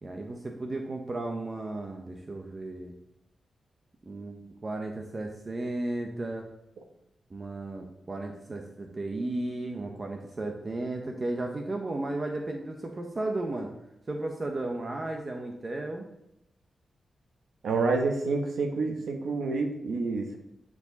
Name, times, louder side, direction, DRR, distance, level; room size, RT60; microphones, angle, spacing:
voice 1, 0.0-2.9 4.1-6.5 7.3-13.7 14.1-16.1, right 2 dB, 30° right, 3 dB, 0.8 m, -34 dB
voice 2, 17.6-20.4, right 3 dB, 80° right, 4 dB, 1.2 m, -28 dB
9.6 x 4.8 x 4.0 m, 0.81 s
wide cardioid pair, 140°, 0 cm